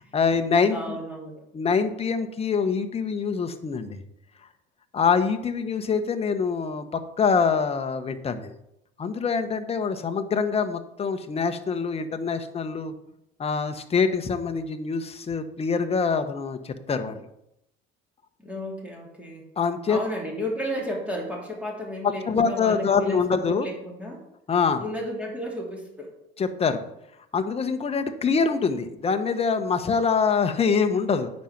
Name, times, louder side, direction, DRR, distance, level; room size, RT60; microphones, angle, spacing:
voice 1, 0.1-1.0 1.5-4.0 4.9-8.5 9.0-12.9 13.4-17.2 19.6-20.0 22.3-23.7 24.5-24.8 26.4-26.8 27.3-31.3, left 5 dB, 30° left, 7 dB, 1.0 m, -25 dB
voice 2, 0.7-1.4 18.4-19.5 19.9-24.2 24.8-26.2, equal, 5° right, -2 dB, 2.8 m, -33 dB
9.2 x 5.3 x 5.8 m, 0.82 s
supercardioid pair, 95°, 21 cm